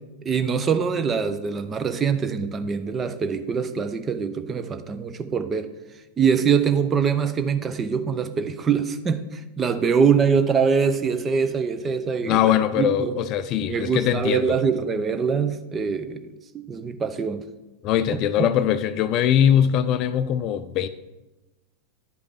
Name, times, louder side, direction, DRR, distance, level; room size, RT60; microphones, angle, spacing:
voice 1, 0.2-5.7 6.2-13.1 13.7-17.4 18.1-18.5, right 6 dB, 20° right, 10 dB, 0.6 m, -24 dB
voice 2, 12.3-14.6 17.8-20.9, left 10 dB, 40° left, 13 dB, 0.4 m, -21 dB
9.5 x 5.1 x 4.9 m, 1.1 s
figure-of-eight pair, 90°, 0 cm